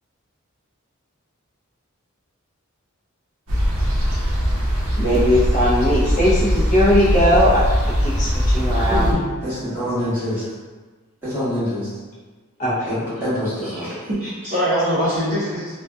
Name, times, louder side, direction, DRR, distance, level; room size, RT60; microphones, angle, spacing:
sound 1, 3.5-9.1, equal, 80° right, 0.6 m, -20 dB
voice 1, 5.0-7.6 8.0-9.1 12.6-12.9, equal, 35° left, -8 dB, 0.5 m, -19 dB
voice 2, 8.9-10.4 11.2-11.9 12.6-13.9, equal, 10° right, -14 dB, 1.2 m, -25 dB
voice 3, 13.6-15.8, equal, 30° right, -10 dB, 0.5 m, -23 dB
2.5 x 2.2 x 2.3 m, 1.3 s
head